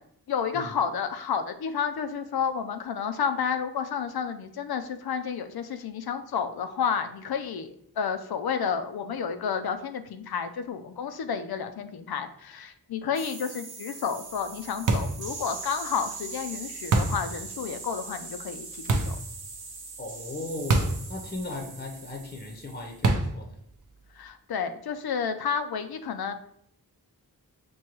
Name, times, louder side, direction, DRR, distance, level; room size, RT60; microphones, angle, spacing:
voice 1, 0.3-19.2 24.2-26.3, left 7 dB, 75° left, 8 dB, 0.5 m, -31 dB
sound 1, 13.1-23.0, right 4 dB, 85° right, 0.8 m, -41 dB
sound 2, 14.9-15.2 16.9-17.3 18.9-19.2 20.7-21.0 21.3-21.4 23.0-23.4, right 3 dB, 55° right, 0.6 m, -24 dB
voice 2, 20.0-23.5, left 2 dB, 25° left, 2 dB, 0.7 m, -37 dB
6.2 x 2.2 x 3.0 m, 0.69 s
wide cardioid pair, 90°, 37 cm